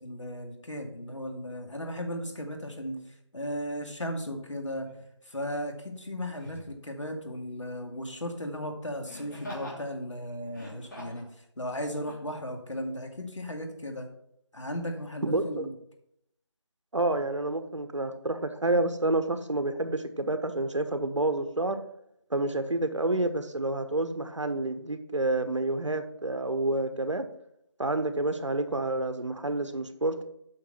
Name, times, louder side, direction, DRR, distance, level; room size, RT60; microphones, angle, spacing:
voice 1, 0.0-3.0 3.3-4.9 5.2-14.1 14.5-15.7, equal, 85° left, 3 dB, 2.3 m, -36 dB
Laughter, 4.8-5.0 6.3-6.7 9.1-9.8 10.5-11.3 12.0-12.2, left 1 dB, 40° left, 3.1 m, -42 dB
voice 2, 15.2-15.7 16.9-21.8 22.3-27.2 27.8-30.2, right 2 dB, 75° right, 9 dB, 1.3 m, -29 dB
8.5 x 5.9 x 5.7 m, 0.77 s
figure-of-eight pair, 170°, 15 cm